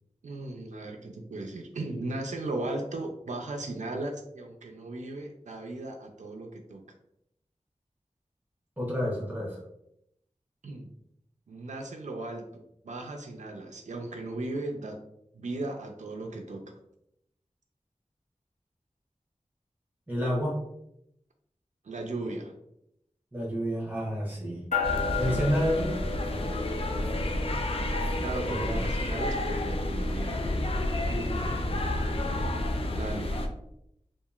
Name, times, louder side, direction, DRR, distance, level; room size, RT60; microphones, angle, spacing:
voice 1, 0.2-6.8 10.6-10.9 11.5-15.0 15.3-16.7 21.8-22.5 25.2-25.6 28.2-30.4 32.9-33.4, right 2 dB, 70° right, 3 dB, 0.4 m, -36 dB
voice 2, 8.8-9.6 20.1-20.6 23.3-24.6 25.2-25.9 26.3-26.4 28.4-28.7 31.1-31.6, equal, 15° right, -5 dB, 0.9 m, -30 dB
sound 1, 24.7-32.4, left 5 dB, 70° left, 0.8 m, -37 dB
sound 2, 24.8-33.5, left 1 dB, 45° left, 0.4 m, -30 dB
2.8 x 2.4 x 2.3 m, 0.78 s
wide cardioid pair, 60°, 13 cm